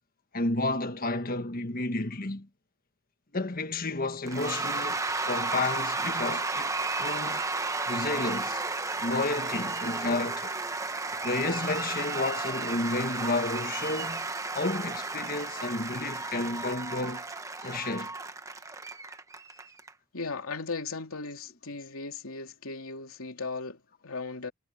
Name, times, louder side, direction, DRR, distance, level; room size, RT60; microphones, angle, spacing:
voice 1, 0.3-2.5 3.3-6.7 7.0-7.4 7.9-8.6 9.0-10.5 11.2-14.3 14.5-17.2 17.6-18.1, left 2 dB, 45° left, 1.5 m, -31 dB
Cheering / Applause / Crowd, 4.3-19.9, right 3 dB, 15° right, 1.1 m, -33 dB
voice 2, 20.1-24.5, left 4 dB, 85° left, 2.9 m, -37 dB
head